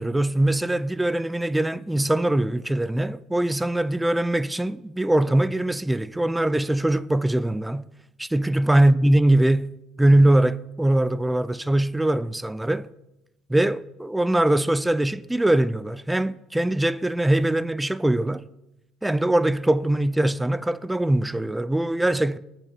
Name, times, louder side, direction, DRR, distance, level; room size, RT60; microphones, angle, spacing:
voice 1, 0.0-7.9 8.2-9.7 10.0-12.9 13.5-18.5 19.0-22.4, right 1 dB, 10° right, 0.4 m, -22 dB
8.4 x 6.0 x 7.9 m
hypercardioid pair, 60°, 0 cm